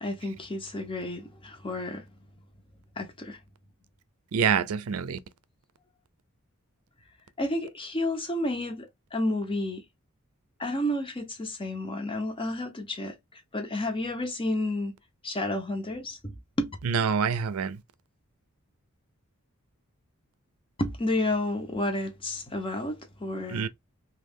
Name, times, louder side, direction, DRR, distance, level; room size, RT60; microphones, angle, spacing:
voice 1, 0.0-2.0 3.0-3.4 7.4-9.8 10.6-13.2 13.5-14.9 15.2-16.8 20.8-23.7, left 1 dB, 25° left, 0.8 m, -31 dB
voice 2, 4.3-5.2 16.9-17.8 23.5-23.7, right 6 dB, 85° right, 0.4 m, -26 dB
3.1 x 2.4 x 3.5 m
head